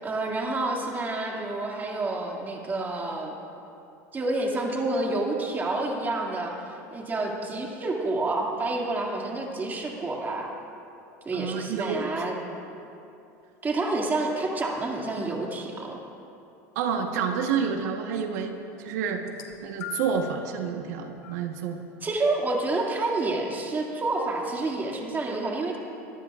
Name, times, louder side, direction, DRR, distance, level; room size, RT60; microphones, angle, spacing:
voice 1, 0.0-3.3 4.1-10.5 11.2-12.4 13.6-16.0 22.0-25.8, right 2 dB, 20° right, -1 dB, 2.3 m, -29 dB
voice 2, 11.3-12.1 16.7-19.2 19.6-21.8, right 6 dB, 75° right, 4 dB, 1.2 m, -29 dB
sound 1, 19.2-20.3 21.2-21.4 22.5-22.6, left 12 dB, 75° left, 1.3 m, -40 dB
23.0 x 14.5 x 2.5 m, 2.7 s
supercardioid pair, 105°, 9 cm